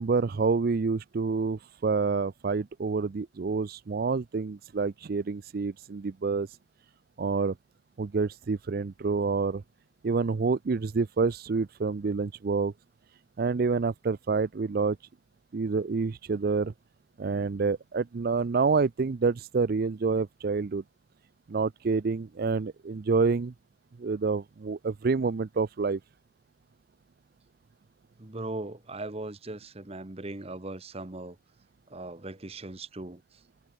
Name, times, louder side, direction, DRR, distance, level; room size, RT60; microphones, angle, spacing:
voice 1, 0.0-6.6 7.2-7.5 8.0-9.6 10.0-12.7 13.4-15.0 15.5-16.7 17.2-20.8 21.5-23.5 24.0-26.0, right 4 dB, 50° right, 0.4 m, -28 dB
voice 2, 28.2-31.4 31.9-33.4, right 2 dB, 30° right, 1.2 m, -39 dB
head